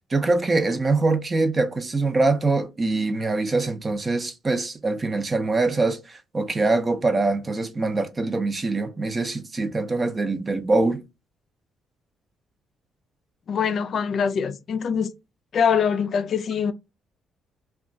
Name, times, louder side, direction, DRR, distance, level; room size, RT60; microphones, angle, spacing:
voice 1, 0.1-11.0, right 3 dB, 30° right, 0.5 m, -23 dB
voice 2, 13.5-15.1 15.5-16.7, left 7 dB, 55° left, 0.3 m, -23 dB
2.3 x 2.3 x 3.8 m
cardioid pair, 90°, 0 cm